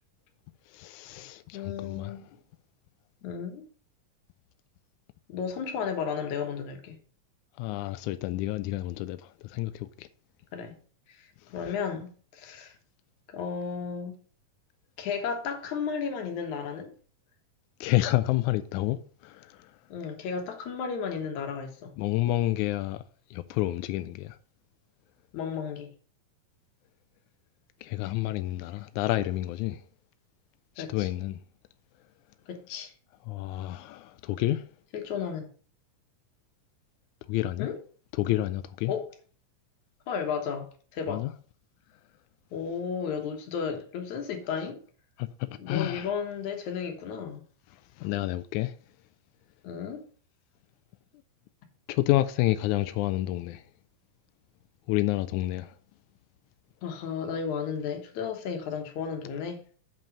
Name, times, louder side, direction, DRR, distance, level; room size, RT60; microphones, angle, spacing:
voice 1, 0.7-2.1 7.6-10.1 17.8-19.0 19.2-19.7 22.0-23.0 23.3-24.4 27.8-29.8 30.8-31.4 33.3-34.7 37.3-37.7 38.1-38.9 41.1-41.3 45.2-45.3 45.7-46.1 48.0-48.7 51.9-53.6 54.9-55.7, left 16 dB, 85° left, 1.7 m, -29 dB
voice 2, 1.5-2.2 3.2-3.7 5.3-7.0 10.5-10.8 11.1-11.3 11.5-12.7 13.3-14.2 15.0-16.9 19.9-21.9 25.3-25.9 30.8-31.1 32.5-32.9 34.9-35.5 37.6-37.8 38.9-39.1 40.1-41.3 42.5-44.8 45.6-47.4 49.6-50.0 56.8-59.6, left 6 dB, 65° left, 2.5 m, -33 dB
7.3 x 5.4 x 5.4 m
omnidirectional pair, 3.9 m